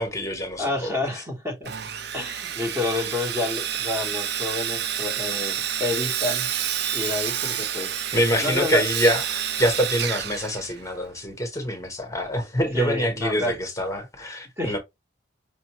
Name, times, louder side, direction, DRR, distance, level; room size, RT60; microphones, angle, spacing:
voice 1, 0.0-1.0 8.1-14.8, equal, 15° left, 1.0 m, -25 dB
voice 2, 0.6-1.7 2.1-6.5 6.9-7.9 8.4-8.8 12.7-13.5 14.6-14.8, left 2 dB, 15° right, 1.0 m, -29 dB
Sawing, 1.6-11.1, right 9 dB, 60° right, 0.5 m, -29 dB
5.5 x 2.5 x 2.9 m
head